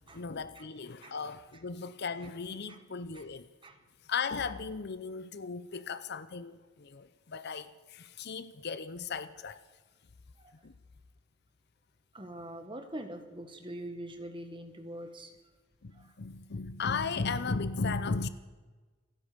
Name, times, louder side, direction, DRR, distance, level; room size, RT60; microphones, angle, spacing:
voice 1, 0.1-3.5 4.0-9.6 10.6-10.7 15.8-18.3, left 4 dB, 50° left, 0.6 m, -36 dB
voice 2, 12.1-15.3 15.9-16.1, right 1 dB, 25° right, 1.7 m, -43 dB
28.0 x 9.8 x 5.2 m
head